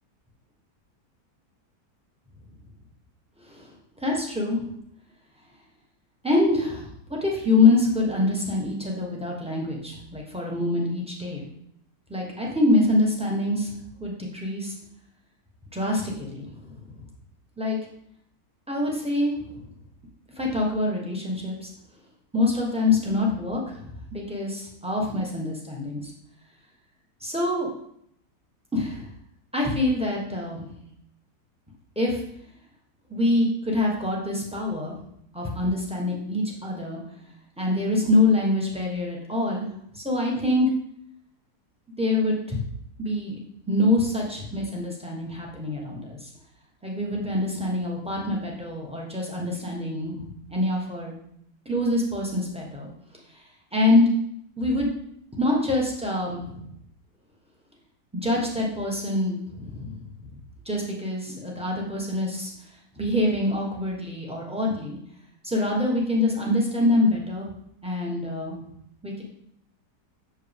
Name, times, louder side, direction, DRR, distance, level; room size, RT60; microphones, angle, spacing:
voice 1, 4.0-4.6 6.2-11.4 12.1-13.7 14.0-14.7 15.7-16.6 17.6-17.8 18.7-19.6 20.4-21.7 22.3-26.1 27.2-27.7 28.7-29.1 29.5-30.7 31.9-32.2 33.1-34.9 35.3-37.0 37.6-39.6 39.9-40.7 42.0-42.6 43.0-43.4 43.7-46.3 46.8-51.1 51.6-52.9 53.7-54.0 54.6-54.9 55.4-56.5 58.1-60.0 60.6-62.5 63.0-65.0 65.4-67.5 67.8-68.6 69.0-69.2, left 2 dB, 5° right, -2 dB, 1.0 m, -25 dB
6.9 x 4.9 x 3.5 m, 0.72 s
omnidirectional pair, 1.8 m